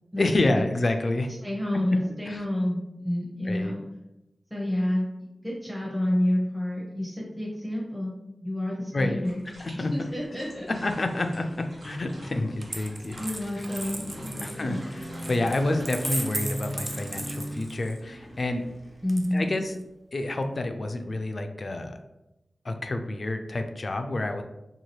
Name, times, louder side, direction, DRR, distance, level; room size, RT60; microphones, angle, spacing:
voice 1, 0.2-1.3 2.2-2.4 3.5-3.7 8.9-9.2 9.6-10.1 10.7-13.7 14.4-18.6 19.3-19.7 20.1-22.0 22.6-24.4, left 2 dB, 55° left, 6 dB, 0.3 m, -29 dB
voice 2, 1.4-3.8 4.5-5.1 5.4-9.4 9.7-10.7 13.2-14.9 19.0-19.5, left 1 dB, 5° right, -4 dB, 0.7 m, -29 dB
sound 1, 9.2-16.2, right 1 dB, 80° right, 1.0 m, -49 dB
sound 2, 11.5-19.6, equal, 50° right, 1.2 m, -39 dB
Coin (dropping), 12.6-18.0 19.1-19.8, right 1 dB, 30° right, 0.4 m, -36 dB
2.8 x 2.3 x 3.0 m, 0.94 s
cardioid pair, 50°, 0 cm